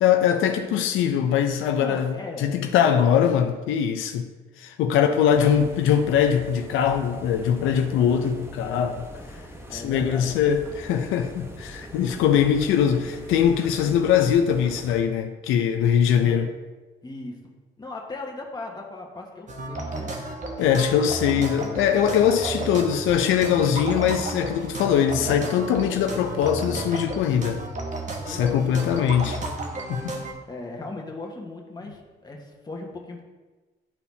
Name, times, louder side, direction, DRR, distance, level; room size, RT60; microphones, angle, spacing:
voice 1, 0.0-4.3 4.6-9.0 9.7-16.5 20.6-27.6 28.3-29.4 29.9-30.2, left 8 dB, 90° left, 6 dB, 0.5 m, -22 dB
voice 2, 1.7-2.5 4.8-5.7 9.7-10.4 12.0-12.2 16.2-16.4 17.0-17.4 17.8-20.1 20.6-22.0 22.4-22.8 28.3-29.2 30.5-33.2, left 2 dB, 20° left, 0 dB, 1.4 m, -38 dB
sound 1, 5.3-15.0, equal, 10° right, 0.9 m, -42 dB
sound 2, 19.5-30.3, right 2 dB, 40° right, 1.1 m, -33 dB
11.0 x 4.2 x 2.7 m, 1.3 s
cardioid pair, 90°, 20 cm